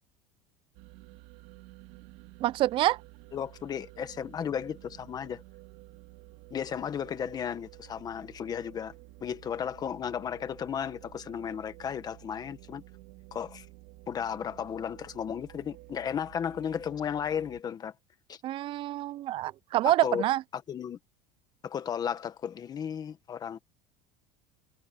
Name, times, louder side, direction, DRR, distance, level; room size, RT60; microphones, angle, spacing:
sound 1, 0.7-17.6, right 21 dB, 60° right, 2.1 m, -52 dB
voice 1, 2.4-3.0 18.4-20.4, right 14 dB, 30° right, 0.3 m, -27 dB
voice 2, 3.3-5.4 6.5-8.9 9.2-12.8 13.3-13.7 14.1-17.9 18.3-18.4 20.0-20.2 20.5-21.0 21.6-23.6, left 8 dB, 25° left, 1.4 m, -34 dB
cardioid pair, 160°, 17 cm